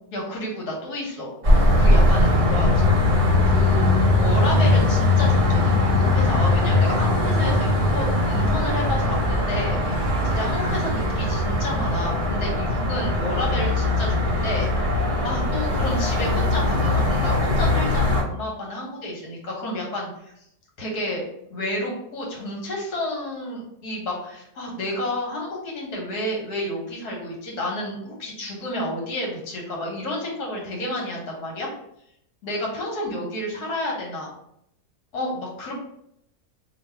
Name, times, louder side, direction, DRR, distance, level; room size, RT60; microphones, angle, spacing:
voice 1, 0.1-1.3 1.8-2.9 3.4-3.9 4.2-9.8 10.3-14.7 15.2-20.3 20.8-31.7 32.4-34.3 35.1-35.7, left 1 dB, 75° left, -2 dB, 1.6 m, -30 dB
sound 1, 1.4-18.2, left 2 dB, 45° right, 0.4 m, -20 dB
3.2 x 2.5 x 4.4 m, 0.76 s
omnidirectional pair, 1.7 m